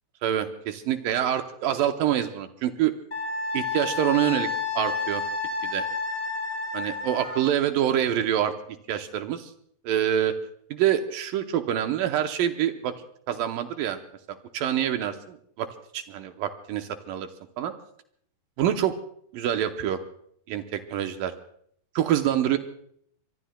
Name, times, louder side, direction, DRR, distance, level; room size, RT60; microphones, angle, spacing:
voice 1, 0.2-2.9 3.5-4.5 4.7-5.2 5.6-5.9 6.7-8.5 8.9-9.5 9.8-10.4 10.7-12.9 13.3-14.0 14.3-15.7 15.9-17.3 17.6-17.7 18.6-18.9 19.3-20.0 20.5-21.3 22.0-22.6, right 10 dB, 75° right, 6 dB, 2.1 m, -26 dB
Wind instrument woodwind instrument, 3.1-7.4, left 4 dB, 20° left, 5.3 m, -30 dB
24.5 x 23.5 x 2.2 m, 0.65 s
omnidirectional pair, 4.8 m